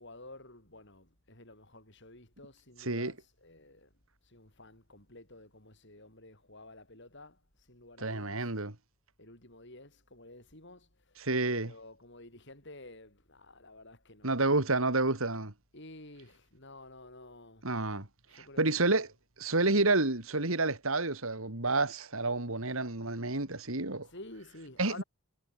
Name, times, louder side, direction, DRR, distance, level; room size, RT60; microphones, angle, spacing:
voice 1, 0.0-3.9 4.2-7.4 7.7-8.5 9.2-11.2 11.5-14.5 15.7-17.7 18.3-18.9 24.0-25.0, left 2 dB, 55° left, 7.6 m, -52 dB
voice 2, 2.8-3.1 8.0-8.7 11.2-11.7 14.2-15.5 17.6-18.1 18.3-19.1 19.4-24.1 24.8-25.0, right 2 dB, 65° right, 2.9 m, -29 dB
head